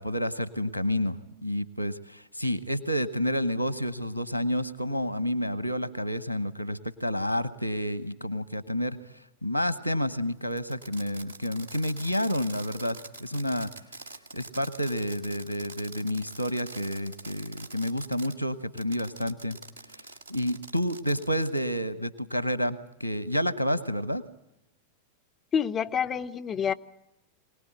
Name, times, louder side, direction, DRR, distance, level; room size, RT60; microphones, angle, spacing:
voice 1, 0.0-9.0 9.4-13.7 14.3-19.6 19.9-20.0 20.3-24.2, equal, 85° right, 15 dB, 1.1 m, -29 dB
Fireworks, 10.5-18.4 18.8-21.6, right 2 dB, 65° right, 2.1 m, -45 dB
voice 2, 25.5-26.7, left 7 dB, 25° left, 8 dB, 0.9 m, -27 dB
25.0 x 19.0 x 9.0 m, 0.86 s
figure-of-eight pair, 90°, 0 cm